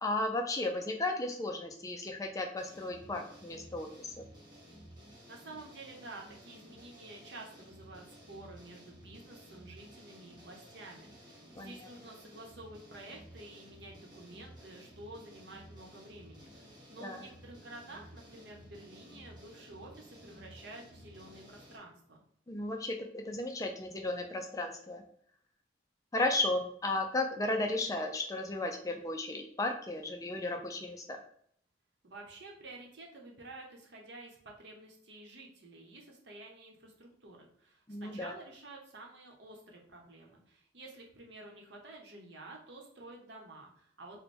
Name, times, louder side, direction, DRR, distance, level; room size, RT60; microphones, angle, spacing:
voice 1, 0.0-4.2 11.6-11.7 17.0-17.2 22.5-25.0 26.1-31.2 37.9-38.3, left 2 dB, 20° left, 3 dB, 0.3 m, -34 dB
sound 1, 2.6-21.8, equal, 25° right, 0.8 m, -54 dB
voice 2, 5.3-22.2 32.0-44.2, right 2 dB, 70° right, 0 dB, 0.9 m, -50 dB
3.3 x 2.2 x 4.2 m, 0.65 s
head